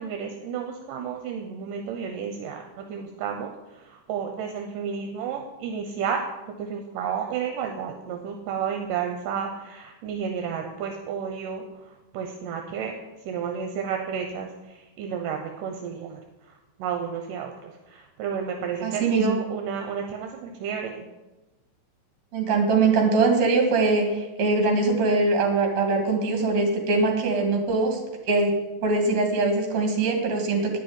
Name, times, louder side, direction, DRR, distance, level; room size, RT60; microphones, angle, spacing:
voice 1, 0.0-6.2 6.6-21.1, right 7 dB, 80° right, 4 dB, 2.4 m, -32 dB
voice 2, 18.8-19.4 22.3-28.0 28.3-28.5 28.8-30.8, right 3 dB, 60° right, 3 dB, 3.1 m, -22 dB
10.0 x 6.1 x 8.8 m, 1.1 s
omnidirectional pair, 3.9 m